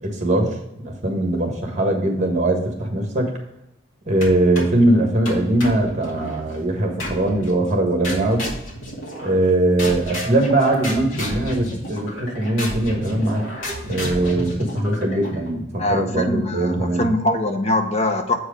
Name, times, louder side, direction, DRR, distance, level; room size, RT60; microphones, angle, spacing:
voice 1, 0.0-3.3 4.1-8.5 9.2-13.4 13.8-17.1, right 1 dB, 35° right, 2 dB, 1.5 m, -21 dB
sound 1, 4.2-4.8 5.2-6.4 7.0-7.5 8.0-9.5 9.8-15.5, equal, 75° left, 2.2 m, -31 dB
voice 2, 15.8-18.4, left 1 dB, 35° left, 5 dB, 0.8 m, -22 dB
7.8 x 4.6 x 5.0 m, 0.86 s
head